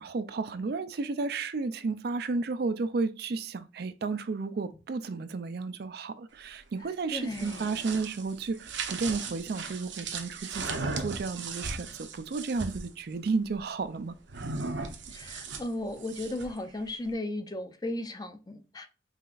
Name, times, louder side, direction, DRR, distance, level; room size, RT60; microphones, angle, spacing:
voice 1, 0.0-14.5, right 4 dB, 55° right, 0.4 m, -33 dB
voice 2, 7.1-7.7 15.1-18.9, left 1 dB, 20° left, 0.5 m, -35 dB
sound 1, 7.1-12.9 14.3-16.6, right 4 dB, 70° right, 0.8 m, -37 dB
5.6 x 3.3 x 2.4 m
head